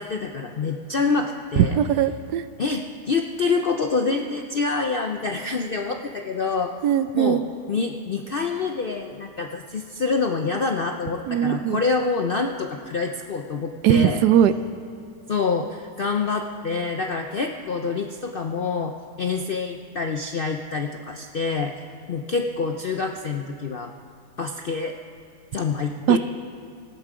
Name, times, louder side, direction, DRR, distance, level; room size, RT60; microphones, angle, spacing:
voice 1, 0.0-1.8 2.6-6.7 7.1-7.4 7.7-14.2 15.3-21.7 22.1-23.9 24.4-24.9 25.5-26.2, left 4 dB, 65° left, 4 dB, 0.5 m, -26 dB
voice 2, 1.6-2.4 6.8-7.4 11.3-11.8 13.8-14.5 26.1-26.2, right 10 dB, 80° right, 12 dB, 1.1 m, -19 dB
18.0 x 13.5 x 5.0 m, 2.4 s
omnidirectional pair, 1.8 m